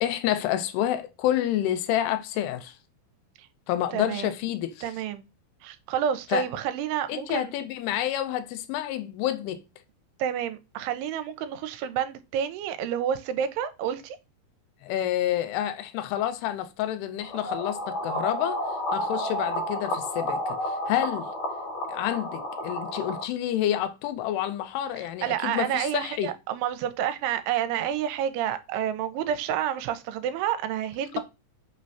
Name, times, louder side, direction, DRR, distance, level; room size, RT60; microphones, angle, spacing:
voice 1, 0.0-2.7 3.7-4.8 6.3-6.5 7.1-9.6 14.8-18.6 18.9-21.3 21.9-26.3, left 12 dB, 90° left, 2.6 m, -28 dB
voice 2, 3.9-4.3 4.8-5.3 5.6-7.5 10.2-14.2 25.2-31.2, right 9 dB, 85° right, 2.6 m, -29 dB
woo owl glitchy broken fantasy scifi, 17.2-23.2, equal, 65° left, 2.5 m, -31 dB
5.7 x 3.1 x 2.7 m
omnidirectional pair, 4.7 m